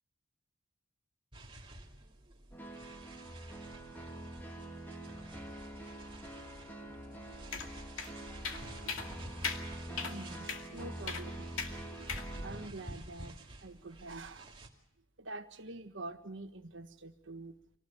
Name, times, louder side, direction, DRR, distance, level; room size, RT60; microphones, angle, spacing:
sound 1, 1.3-14.7, right 1 dB, 25° right, 2.4 m, -50 dB
sound 2, 2.5-12.7, right 1 dB, 10° left, 2.1 m, -46 dB
sound 3, 7.5-7.7 8.0-8.1 8.4-8.6 8.9-9.1 9.4-9.6 10.0-10.1 10.5-10.6 11.1-11.2 11.6-11.7 12.1-12.3, left 5 dB, 80° left, 2.3 m, -37 dB
voice 1, 8.8-9.3 9.5-12.1 12.3-14.5 15.2-17.5, right 2 dB, 65° right, 7 dB, 1.5 m, -47 dB
26.0 x 18.5 x 6.9 m, 0.72 s
head